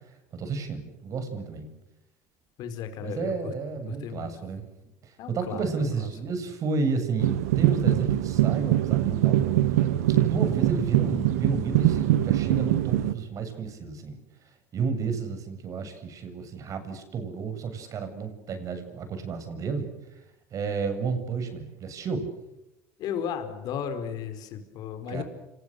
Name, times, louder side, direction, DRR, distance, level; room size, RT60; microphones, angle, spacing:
voice 1, 0.3-1.7 3.0-4.7 5.0-9.4 10.1-14.2 14.7-19.9 20.5-22.3 25.1-25.2, right 4 dB, 45° right, 8 dB, 7.7 m, -31 dB
voice 2, 2.6-3.5 3.9-4.3 5.2-5.6 6.0-6.1 23.0-25.2, left 8 dB, 55° left, 8 dB, 4.9 m, -34 dB
sound 1, 7.2-13.1, right 13 dB, 85° right, 1.5 m, -23 dB
29.0 x 27.5 x 6.8 m, 0.93 s
supercardioid pair, 95°, 8 cm